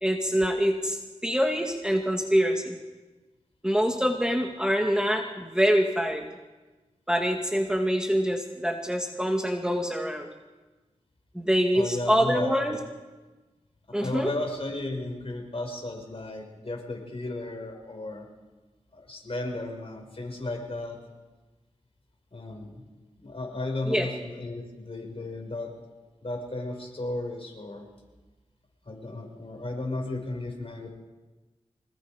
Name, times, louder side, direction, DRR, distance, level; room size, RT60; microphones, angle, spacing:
voice 1, 0.0-2.8 3.6-6.3 7.1-10.3 11.3-12.8 13.9-14.3 23.9-24.1, equal, 5° right, 3 dB, 2.1 m, -25 dB
voice 2, 11.7-12.8 14.0-18.3 18.9-21.0 22.3-22.8 23.2-25.7 26.2-27.9 28.9-30.9, left 2 dB, 50° left, 1 dB, 5.9 m, -34 dB
25.5 x 19.5 x 5.2 m, 1.2 s
cardioid pair, 50°, 13 cm